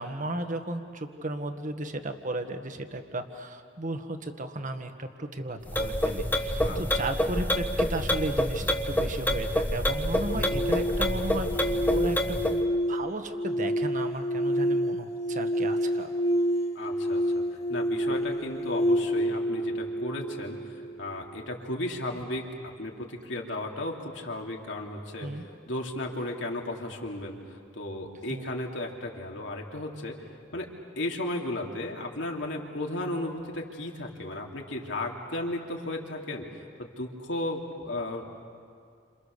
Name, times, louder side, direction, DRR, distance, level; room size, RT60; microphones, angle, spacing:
voice 1, 0.0-16.1 25.2-25.4 28.3-28.5, right 1 dB, 45° right, 7 dB, 1.6 m, -35 dB
sound 1, 5.7-12.6, equal, 10° left, 1.3 m, -27 dB
sound 2, 10.2-21.2, equal, 35° left, 1.9 m, -28 dB
voice 2, 16.7-17.4 17.7-30.2 30.5-30.7 31.0-38.4, left 1 dB, 80° left, 0 dB, 3.0 m, -35 dB
29.5 x 27.5 x 6.8 m, 2.2 s
head